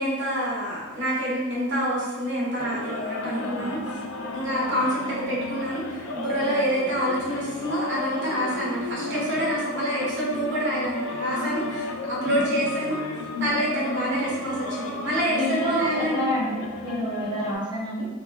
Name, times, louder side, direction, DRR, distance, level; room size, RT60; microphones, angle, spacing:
voice 1, 0.0-3.8 4.3-11.8 12.1-13.0 13.4-16.2, equal, 60° right, -6 dB, 1.0 m, -27 dB
sound 1, 2.6-17.6, left 2 dB, 70° left, 0.4 m, -33 dB
voice 2, 3.2-3.7 6.4-6.6 9.0-9.5 11.2-11.7 12.2-12.4 13.3-13.6 15.3-18.1, equal, 20° right, -9 dB, 0.8 m, -30 dB
2.9 x 2.2 x 3.2 m, 1.2 s
head